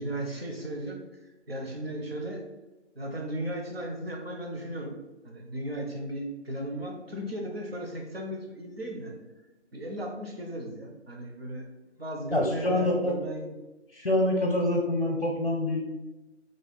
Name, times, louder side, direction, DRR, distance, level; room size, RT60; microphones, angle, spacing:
voice 1, 0.0-2.4 2.9-5.0 5.2-9.2 9.7-11.7 12.0-13.5, right 1 dB, 55° right, 1 dB, 0.8 m, -36 dB
voice 2, 12.3-13.1 13.9-15.8, left 1 dB, 50° left, -1 dB, 0.7 m, -26 dB
3.1 x 2.3 x 4.3 m, 1.0 s
figure-of-eight pair, 180°, 36 cm